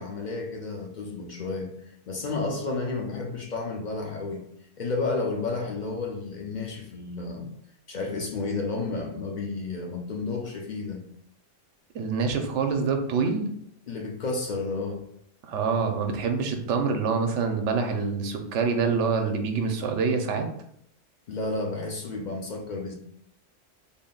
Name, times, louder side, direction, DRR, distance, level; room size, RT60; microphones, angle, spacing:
voice 1, 0.0-1.7 2.1-4.5 4.8-7.5 7.9-11.0 13.9-15.0 21.3-22.9, left 3 dB, 50° left, 1 dB, 0.6 m, -31 dB
voice 2, 11.9-13.4 15.5-20.5, right 5 dB, 75° right, 5 dB, 0.9 m, -26 dB
3.6 x 2.1 x 3.8 m, 0.72 s
omnidirectional pair, 1.2 m